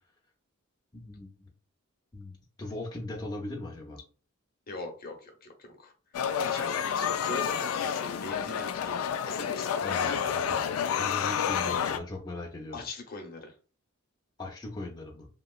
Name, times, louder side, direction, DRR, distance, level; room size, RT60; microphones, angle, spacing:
voice 1, 0.9-1.5 2.1-4.0 9.8-12.8 14.4-15.3, left 2 dB, 20° left, -3 dB, 0.5 m, -39 dB
voice 2, 4.7-5.9 6.4-9.0 9.3-9.7 12.7-13.6, left 2 dB, 45° left, 2 dB, 0.8 m, -41 dB
sound 1, 6.1-12.0, left 8 dB, 85° left, 0.3 m, -29 dB
3.0 x 2.8 x 2.3 m, 0.37 s
head